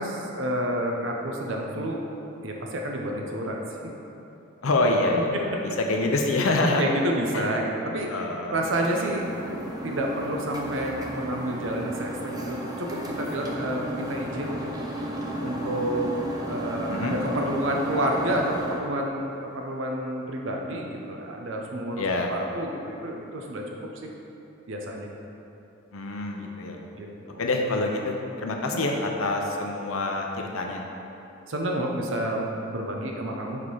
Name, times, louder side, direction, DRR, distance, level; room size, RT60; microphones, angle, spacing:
voice 1, 0.0-2.0 2.4-3.6 5.3-5.6 6.8-14.6 15.4-16.1 16.5-23.8 24.0-24.1 24.7-25.1 26.9-27.4 28.6-28.8 31.5-33.6, right 1 dB, 70° right, 0 dB, 0.7 m, -29 dB
voice 2, 4.6-5.3 5.9-6.8 7.3-7.7 8.1-8.6 16.9-17.2 22.0-22.3 25.9-26.8 27.4-30.8, left 2 dB, 85° left, 1 dB, 0.7 m, -26 dB
sound 1, 8.6-18.8, equal, 20° right, 0.5 m, -34 dB
6.6 x 3.7 x 4.8 m, 2.9 s
head